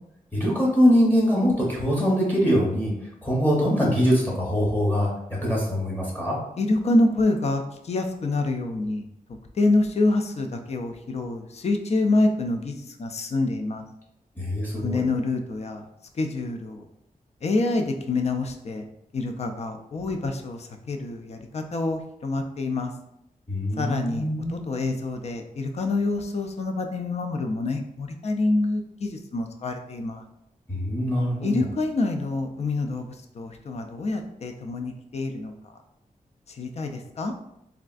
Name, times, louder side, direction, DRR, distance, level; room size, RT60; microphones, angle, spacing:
voice 1, 0.3-2.9 3.2-5.1 5.4-6.4 14.4-15.0 23.5-24.7 30.7-31.6, equal, 10° left, -5 dB, 0.8 m, -23 dB
voice 2, 6.6-9.1 9.6-13.8 14.8-15.8 16.2-16.9 17.4-18.8 19.1-22.9 23.8-30.2 31.4-35.5 36.5-37.3, left 2 dB, 45° left, 5 dB, 0.4 m, -26 dB
3.3 x 2.3 x 2.4 m, 0.81 s
wide cardioid pair, 110°, 15 cm